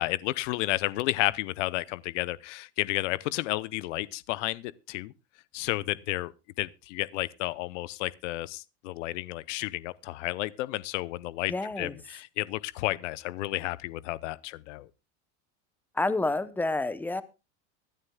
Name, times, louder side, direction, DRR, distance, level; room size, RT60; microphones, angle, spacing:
voice 1, 0.0-5.1 5.5-6.3 6.6-14.9, left 18 dB, 80° left, 0.7 m, -32 dB
voice 2, 11.5-11.9 15.9-17.2, left 2 dB, 5° left, 0.7 m, -29 dB
24.5 x 9.9 x 2.2 m
supercardioid pair, 145°, 36 cm